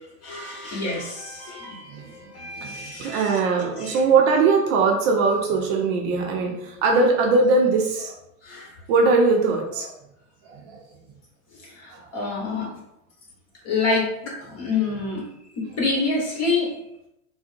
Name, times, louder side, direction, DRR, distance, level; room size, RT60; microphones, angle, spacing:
voice 1, 0.2-3.4 3.8-4.0 8.4-8.7 11.6-12.7 13.6-15.2 15.7-16.7, left 3 dB, 35° left, -3 dB, 1.3 m, -27 dB
voice 2, 1.9-8.2 8.9-9.9 10.5-10.8 11.9-12.1, right 4 dB, 45° right, 1 dB, 0.6 m, -21 dB
3.5 x 2.1 x 2.6 m, 0.82 s
hypercardioid pair, 90°, 44 cm